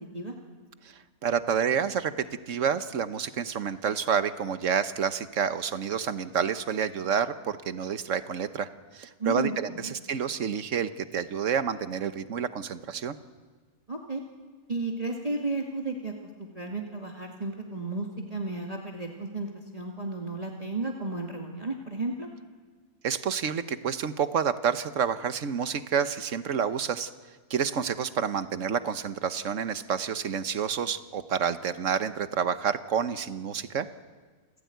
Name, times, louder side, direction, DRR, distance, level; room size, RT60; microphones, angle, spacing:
voice 1, 1.2-2.1 2.5-8.7 8.9-13.2 23.0-27.1 27.5-33.9, right 7 dB, 60° right, 11 dB, 1.4 m, -29 dB
voice 2, 9.2-9.9 13.9-14.2 14.7-16.1 16.4-22.3, right 2 dB, 25° right, 0 dB, 2.1 m, -33 dB
28.5 x 16.0 x 9.4 m, 1.5 s
omnidirectional pair, 1.6 m